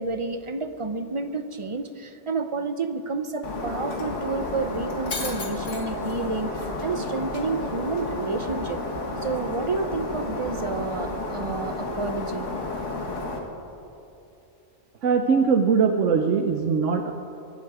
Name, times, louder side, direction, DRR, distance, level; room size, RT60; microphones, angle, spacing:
voice 1, 0.0-8.8 9.2-12.5, right 3 dB, 30° right, 9 dB, 0.7 m, -30 dB
Shatter, 3.4-13.4, left 2 dB, 80° left, 2.0 m, -31 dB
voice 2, 15.0-17.1, right 5 dB, 85° right, 6 dB, 1.1 m, -21 dB
24.0 x 11.0 x 4.9 m, 2.8 s
omnidirectional pair, 1.2 m